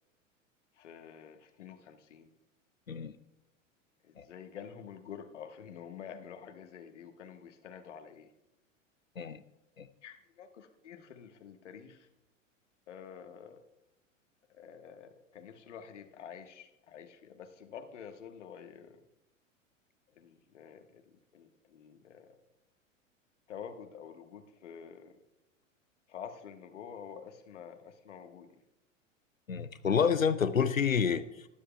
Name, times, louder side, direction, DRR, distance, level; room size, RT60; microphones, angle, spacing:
voice 1, 0.7-2.3 4.0-8.3 10.0-12.1 12.9-13.6 14.5-19.0 20.1-22.4 23.5-25.2 26.1-28.6, left 7 dB, 65° left, 7 dB, 1.4 m, -48 dB
voice 2, 29.5-31.5, left 7 dB, 85° left, 12 dB, 0.6 m, -29 dB
20.0 x 9.8 x 2.3 m, 0.92 s
figure-of-eight pair, 90°, 39 cm